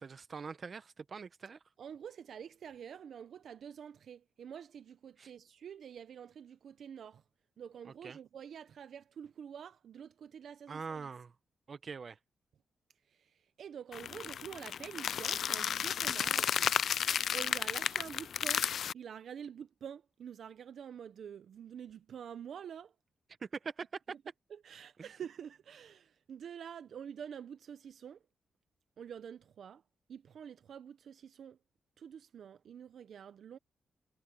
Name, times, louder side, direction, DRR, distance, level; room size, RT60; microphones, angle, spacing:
voice 1, 0.0-1.6 5.2-5.3 7.8-8.2 10.7-11.3 11.7-12.2 23.4-24.2 25.0-25.1, right 5 dB, 40° right, 1.0 m, -43 dB
voice 2, 1.8-7.2 7.6-11.1 13.1-16.9 17.3-18.6 18.9-22.9 24.5-28.2 29.0-29.8 30.1-31.6 32.0-33.6, right 8 dB, 65° right, 0.6 m, -47 dB
sound 1, 13.9-18.9, left 8 dB, 65° left, 0.3 m, -33 dB
cardioid pair, 125°, 0 cm